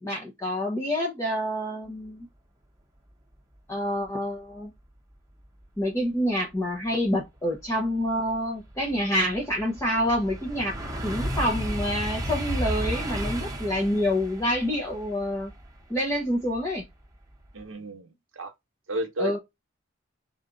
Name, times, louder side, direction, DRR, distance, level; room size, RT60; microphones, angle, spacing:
voice 1, 0.0-2.3 3.7-4.7 5.8-10.8 11.0-15.5 15.9-16.9 19.2-19.4, equal, 15° left, 0.8 m, -27 dB
sound 1, 7.2-7.3 7.8-16.8 17.2-17.6, equal, 15° right, 0.9 m, -33 dB
voice 2, 17.5-18.5 18.9-19.4, right 1 dB, 85° right, 0.9 m, -32 dB
4.5 x 2.6 x 3.8 m
head